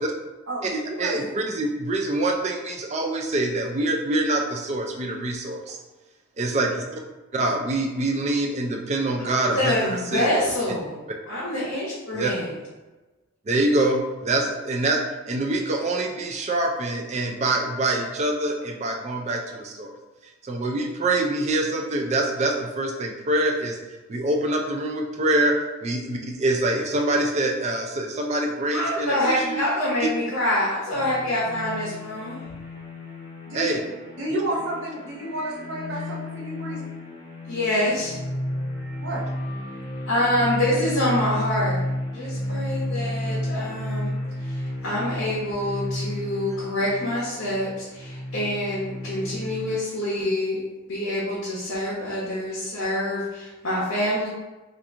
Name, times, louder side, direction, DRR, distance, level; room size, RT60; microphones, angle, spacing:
voice 1, 0.5-1.3 33.5-33.8 34.2-36.9 39.0-39.2, right 1 dB, 60° right, -4 dB, 0.8 m, -31 dB
voice 2, 1.0-5.8 6.4-6.7 7.3-9.8 10.1-10.3 12.1-12.3 13.5-19.9 20.2-23.8 24.1-25.5 25.8-29.6 30.0-30.1 33.5-33.8 34.3-34.4, right 2 dB, 30° right, 2 dB, 0.4 m, -25 dB
voice 3, 9.5-11.0 11.3-12.5 28.7-32.4 37.5-38.2 40.1-41.8 42.1-44.1 44.4-50.6 50.9-54.3, left 1 dB, 60° left, -7 dB, 0.8 m, -26 dB
sound 1, 30.9-49.8, left 1 dB, 20° left, 1.0 m, -32 dB
2.8 x 2.5 x 3.5 m, 1.2 s
head